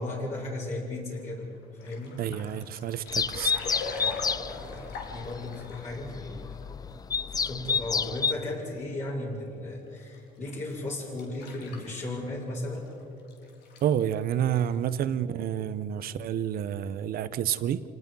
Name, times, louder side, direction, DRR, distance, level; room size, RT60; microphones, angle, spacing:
voice 1, 0.0-1.5 1.8-2.2 3.9-6.9 7.2-12.9, left 2 dB, 45° left, -5 dB, 5.3 m, -36 dB
sound 1, 1.3-6.1 6.6-6.7 6.9-7.0 7.4-7.5 8.5-8.6 10.0-10.2 10.7-12.5 12.7-13.9 14.2-14.3 14.5-14.8 15.1-15.2, left 4 dB, 80° left, 3.4 m, -41 dB
voice 2, 2.2-3.5 13.8-17.9, right 10 dB, 60° right, 13 dB, 0.9 m, -29 dB
sound 2, 3.1-8.3, left 5 dB, 20° left, 0.4 m, -30 dB
27.5 x 19.0 x 5.6 m, 2.6 s
cardioid pair, 110°, 17 cm